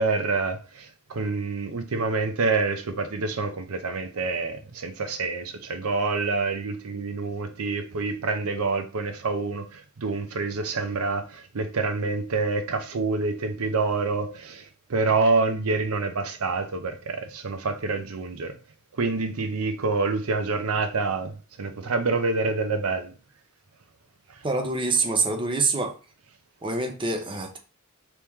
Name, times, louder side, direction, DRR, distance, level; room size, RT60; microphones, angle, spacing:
voice 1, 0.0-18.6 18.9-23.1, right 3 dB, 80° right, 0.6 m, -27 dB
voice 2, 24.4-25.9 26.6-27.6, right 3 dB, 25° right, 0.6 m, -25 dB
3.0 x 2.9 x 3.5 m
head